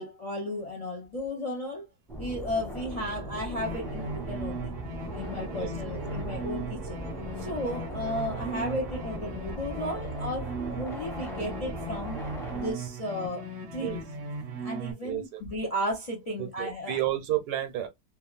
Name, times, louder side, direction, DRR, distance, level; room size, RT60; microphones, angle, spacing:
voice 1, 0.0-1.9 2.2-4.7 5.1-7.0 7.4-12.2 12.5-14.0 14.6-17.0, left 1 dB, 55° left, 0.4 m, -34 dB
sound 1, 2.1-12.7, right 1 dB, ahead, 0.6 m, -38 dB
sound 2, 3.6-14.9, right 2 dB, 60° right, 0.7 m, -38 dB
voice 2, 5.5-6.3 13.8-14.0 15.0-15.4 16.4-17.9, right 13 dB, 75° right, 1.1 m, -32 dB
3.2 x 2.2 x 2.3 m
omnidirectional pair, 1.7 m